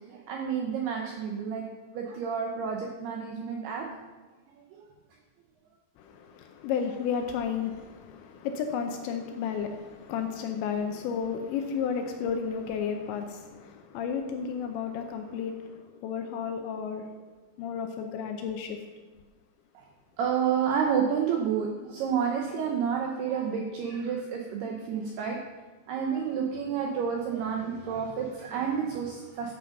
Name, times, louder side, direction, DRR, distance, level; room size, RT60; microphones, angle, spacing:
voice 1, 0.1-1.6 1.9-3.9 4.7-4.9 19.8-19.9 20.2-25.4 25.9-29.5, right 7 dB, 80° right, 1 dB, 2.3 m, -30 dB
voice 2, 6.0-17.1 17.6-18.8, left 7 dB, 80° left, 5 dB, 2.7 m, -32 dB
13.5 x 7.4 x 5.3 m, 1.3 s
omnidirectional pair, 5.8 m